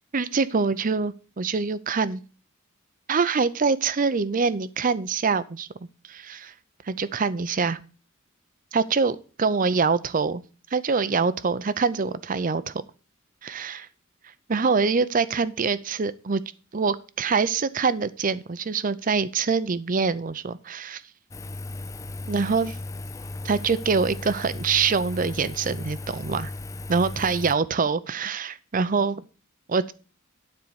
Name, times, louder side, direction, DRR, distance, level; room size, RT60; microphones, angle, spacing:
voice 1, 0.1-2.2 3.1-5.7 6.1-6.5 6.8-7.8 8.7-10.4 10.7-12.7 13.4-13.9 14.5-16.4 16.7-21.0 22.3-22.8 23.4-26.5 26.9-29.2 29.7-29.9, right 5 dB, 40° right, 16 dB, 0.6 m, -24 dB
Engine, 21.3-27.5, left 2 dB, 15° left, 0.4 m, -36 dB
9.6 x 4.5 x 6.9 m, 0.36 s
head